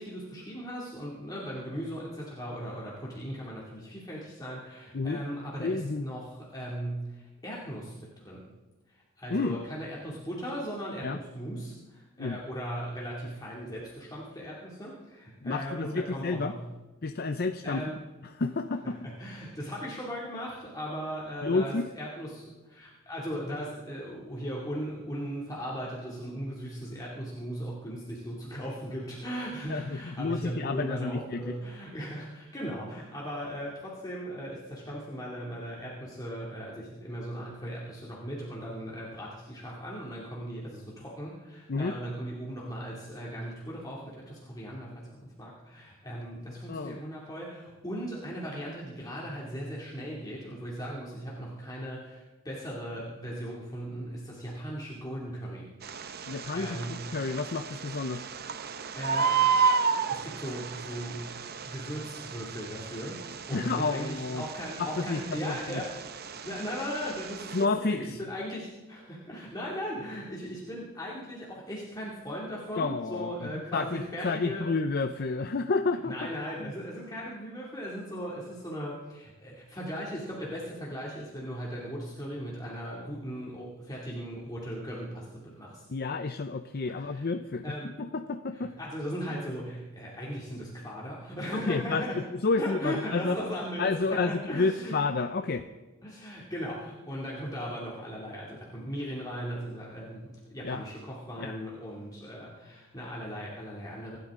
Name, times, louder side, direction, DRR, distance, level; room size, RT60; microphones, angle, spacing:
voice 1, 0.0-8.5 8.9-16.7 17.6-18.0 18.8-55.7 56.1-57.1 58.9-59.8 60.1-61.3 61.6-63.2 63.5-74.7 76.1-85.8 86.9-87.3 87.6-87.9 88.5-92.2 92.6-94.9 96.0-104.2, equal, 20° left, -5 dB, 2.5 m, -38 dB
voice 2, 5.6-6.0 9.3-9.6 11.0-11.2 12.2-12.4 15.4-16.5 17.0-17.8 18.4-19.1 21.4-21.8 29.7-31.5 41.7-42.0 46.7-47.0 56.3-58.2 63.5-64.4 64.8-65.8 67.5-68.1 72.8-76.1 76.6-76.7 85.9-88.7 91.6-93.4 93.8-95.7 100.6-100.8 101.4-101.5, left 3 dB, 50° left, 8 dB, 0.6 m, -30 dB
Bird, 55.8-67.7, right 5 dB, 50° right, 0.8 m, -32 dB
26.5 x 12.0 x 3.7 m, 1.2 s
head